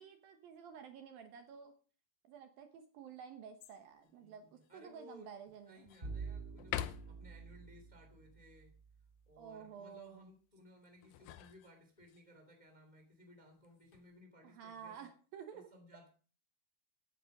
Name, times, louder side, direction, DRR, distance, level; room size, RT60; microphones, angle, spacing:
voice 1, 0.0-1.7 2.3-5.9 9.4-10.3 14.4-15.7, right 7 dB, 70° right, 7 dB, 2.5 m, -52 dB
sound 1, 3.6-4.1 4.6-4.7 5.3-6.1 6.6-7.4 10.8-12.2 13.6-14.1, left 12 dB, 85° left, 2.0 m, -45 dB
voice 2, 4.0-5.3 5.7-8.7 9.3-15.1 15.5-16.1, left 1 dB, 15° left, 4 dB, 1.7 m, -60 dB
Bowed string instrument, 6.0-9.1, right 4 dB, 20° right, 2.3 m, -47 dB
16.5 x 9.2 x 5.3 m, 0.41 s
omnidirectional pair, 5.0 m